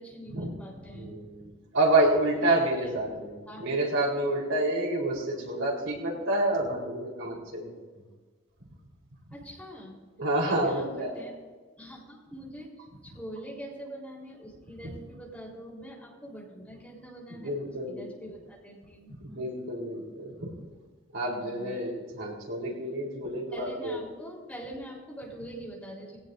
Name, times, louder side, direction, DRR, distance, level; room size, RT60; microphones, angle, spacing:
voice 1, 0.0-1.1 2.4-2.9 3.5-3.6 9.3-10.0 10.4-11.3 11.8-17.5 17.9-19.1 21.4-21.7 23.5-26.2, right 1 dB, 5° left, -3 dB, 4.0 m, -44 dB
voice 2, 0.9-7.8 10.2-11.1 17.3-18.0 19.2-20.5 21.1-24.0, right 1 dB, 85° right, -1 dB, 4.2 m, -28 dB
20.0 x 17.5 x 2.7 m, 1.5 s
head